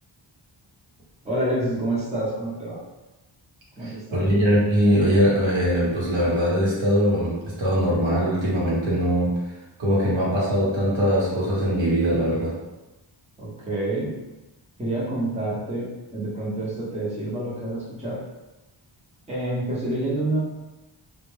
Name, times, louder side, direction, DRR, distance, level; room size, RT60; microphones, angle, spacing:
voice 1, 1.2-2.8 3.8-4.3 13.4-14.1 14.8-18.2 19.3-20.4, right 1 dB, 15° right, -7 dB, 0.8 m, -28 dB
voice 2, 4.1-9.3 9.8-12.5, equal, 65° right, -6 dB, 1.0 m, -21 dB
2.3 x 2.1 x 3.1 m, 1.1 s
wide cardioid pair, 85°, 49 cm